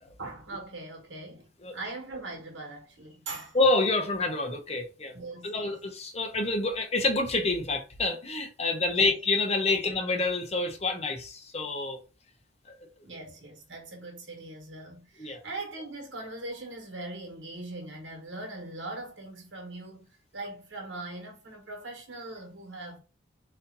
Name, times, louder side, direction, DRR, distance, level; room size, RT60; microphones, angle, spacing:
voice 1, 0.2-3.6 5.1-5.8 8.9-9.1 9.7-9.8 13.0-20.1 20.3-23.0, right 2 dB, 80° right, 1.4 m, -41 dB
voice 2, 3.5-5.2 5.4-12.0 12.7-12.8 15.2-15.4, left 3 dB, 35° left, 0.8 m, -27 dB
4.2 x 2.7 x 3.9 m
head